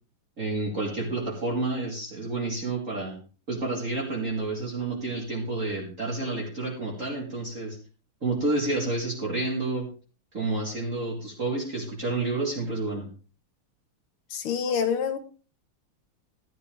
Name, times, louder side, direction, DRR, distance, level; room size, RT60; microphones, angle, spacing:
voice 1, 0.4-3.2 3.5-7.8 8.2-9.9 10.3-13.1, right 2 dB, 35° right, -3 dB, 2.5 m, -29 dB
voice 2, 14.3-15.2, left 7 dB, 80° left, 9 dB, 2.2 m, -26 dB
13.5 x 11.0 x 3.4 m, 0.36 s
omnidirectional pair, 2.4 m